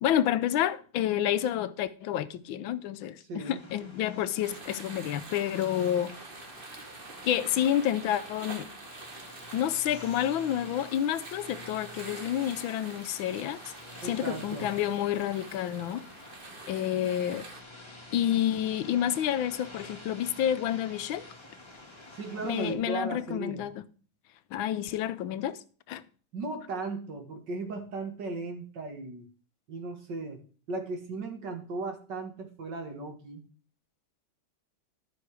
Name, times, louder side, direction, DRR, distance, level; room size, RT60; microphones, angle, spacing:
voice 1, 0.0-6.1 7.2-8.7 9.5-13.6 14.0-16.0 16.7-17.5 18.1-21.2 22.4-23.7 24.5-25.6 25.9-26.0, left 11 dB, 85° left, 1.5 m, -29 dB
voice 2, 3.2-3.6 14.0-14.7 22.1-23.7 26.3-29.3 29.7-30.4 30.7-33.4, right 3 dB, 60° right, 2.4 m, -36 dB
sound 1, 3.4-22.7, left 2 dB, 15° left, 1.7 m, -49 dB
sound 2, 4.4-17.6, right 3 dB, 35° right, 1.2 m, -46 dB
13.0 x 5.7 x 4.8 m
omnidirectional pair, 2.1 m